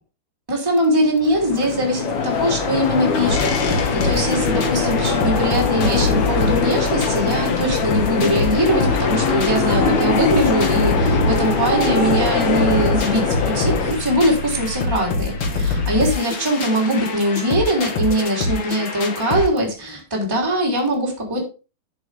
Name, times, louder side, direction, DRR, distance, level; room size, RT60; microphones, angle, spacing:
voice 1, 0.5-21.4, right 1 dB, 5° right, -2 dB, 2.9 m, -21 dB
sound 1, 1.2-13.9, left 5 dB, 85° left, 3.6 m, -22 dB
sound 2, 3.3-19.5, left 3 dB, 55° left, 1.4 m, -25 dB
11.0 x 7.6 x 3.5 m, 0.31 s
omnidirectional pair, 4.3 m